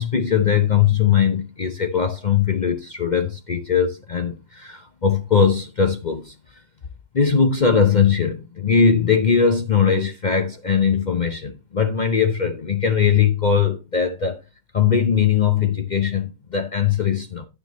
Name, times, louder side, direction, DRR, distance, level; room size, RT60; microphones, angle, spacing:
voice 1, 0.0-6.3 7.1-14.4 14.7-17.5, left 7 dB, 90° left, 0.4 m, -20 dB
10.0 x 9.7 x 3.0 m
omnidirectional pair, 1.9 m